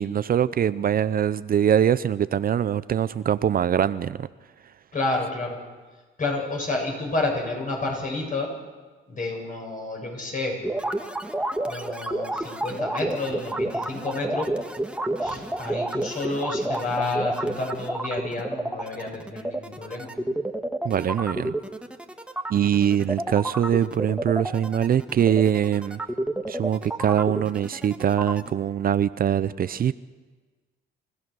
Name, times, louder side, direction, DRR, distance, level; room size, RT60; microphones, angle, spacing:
voice 1, 0.0-4.3 20.8-21.5 22.5-26.0 26.5-29.9, right 9 dB, 50° right, 15 dB, 0.5 m, -23 dB
voice 2, 4.9-5.6 6.2-8.5 9.1-10.6 11.7-14.5 15.2-20.1, left 2 dB, 40° left, 0 dB, 6.9 m, -30 dB
sound 1, 10.6-28.5, right 1 dB, 5° right, 1.4 m, -30 dB
28.0 x 15.0 x 6.3 m, 1.4 s
cardioid pair, 90°, 20 cm